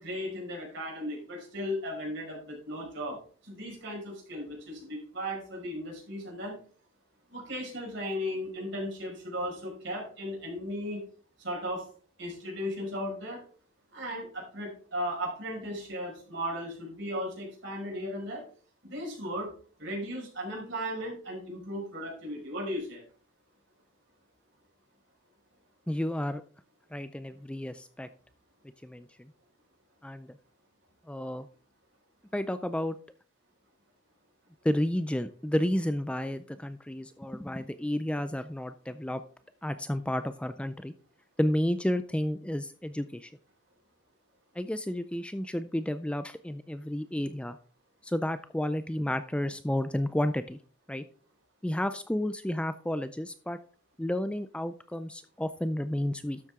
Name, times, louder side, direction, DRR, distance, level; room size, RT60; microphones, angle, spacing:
voice 1, 0.0-6.6 7.3-11.0 11.4-11.9 12.2-13.4 13.9-18.4 18.8-19.5 19.8-23.0, equal, 60° right, -2 dB, 5.3 m, -36 dB
voice 2, 25.9-26.4 26.9-28.1 28.8-29.3 30.0-30.4 31.1-31.5 32.3-33.0 34.6-39.2 39.6-40.9 41.4-43.3 44.6-47.6 48.0-50.6 50.9-51.0 51.6-53.6 54.0-56.4, left 1 dB, 5° left, 11 dB, 0.3 m, -31 dB
12.5 x 7.5 x 3.6 m, 0.42 s
head